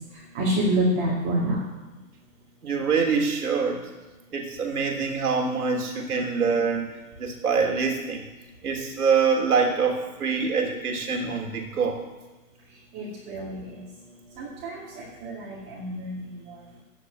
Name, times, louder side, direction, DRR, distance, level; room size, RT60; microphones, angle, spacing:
voice 1, 0.3-1.6 12.9-13.6 14.4-14.8 15.2-16.3, right 1 dB, 20° right, -7 dB, 2.3 m, -27 dB
voice 2, 2.6-3.9 4.3-6.9 7.2-8.2 8.6-12.0, right 5 dB, 70° right, 2 dB, 3.4 m, -25 dB
15.5 x 5.3 x 9.8 m, 1.1 s
hypercardioid pair, 160°, 47 cm